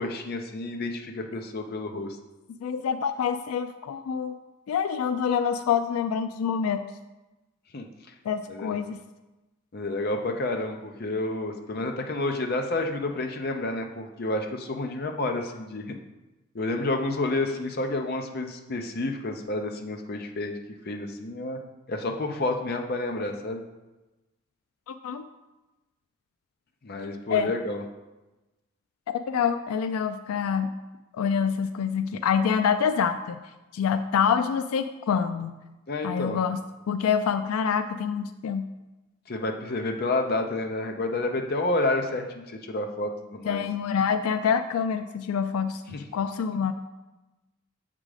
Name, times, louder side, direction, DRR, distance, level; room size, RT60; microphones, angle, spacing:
voice 1, 0.0-2.2 7.7-7.9 8.5-8.7 9.7-16.0 16.5-20.6 20.9-21.6 21.9-23.6 26.8-27.8 35.9-36.4 39.3-43.6 45.9-46.0, left 2 dB, 45° left, 4 dB, 0.6 m, -30 dB
voice 2, 2.6-4.4 4.7-6.8 8.3-9.0 24.9-25.2 27.3-27.5 29.3-30.7 31.1-33.4 33.7-35.6 36.0-36.6 36.9-38.6 43.5-46.7, left 7 dB, 85° left, 10 dB, 0.3 m, -26 dB
7.3 x 3.8 x 4.9 m, 1.1 s
head